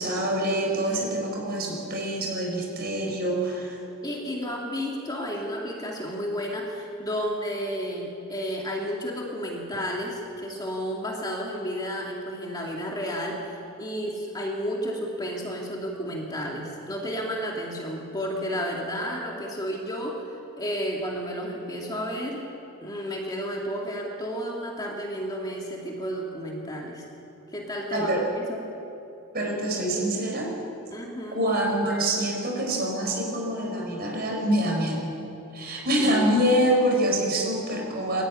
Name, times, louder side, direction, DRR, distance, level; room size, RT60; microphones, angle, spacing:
voice 1, 0.0-3.8 27.9-28.2 29.3-30.5 31.3-35.1 35.5-38.2, right 1 dB, 45° right, 0 dB, 5.3 m, -25 dB
voice 2, 4.0-22.4 22.8-27.0 27.5-28.1 28.5-28.6 30.9-31.4 36.1-36.3, equal, 20° left, -2 dB, 2.4 m, -32 dB
23.0 x 14.0 x 9.9 m, 2.8 s
head